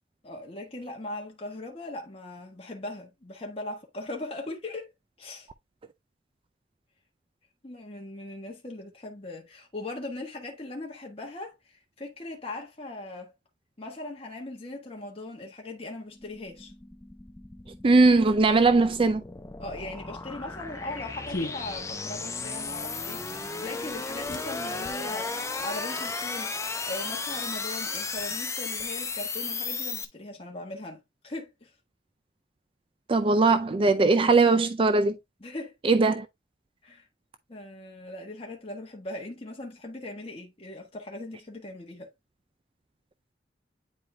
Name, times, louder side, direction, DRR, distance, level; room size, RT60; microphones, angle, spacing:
voice 1, 0.2-4.9 5.2-5.5 7.6-13.3 13.8-16.7 19.6-26.5 26.8-31.7 35.4-35.7 36.8-37.1 37.5-42.1, left 2 dB, 35° left, 1.3 m, -39 dB
sound 1, 16.1-30.1, left 4 dB, 15° left, 0.6 m, -35 dB
voice 2, 17.8-19.2 33.1-35.2 35.8-36.3, right 3 dB, 30° right, 0.4 m, -20 dB
sound 2, 20.4-29.3, left 2 dB, 50° left, 1.2 m, -44 dB
9.5 x 4.8 x 2.2 m
head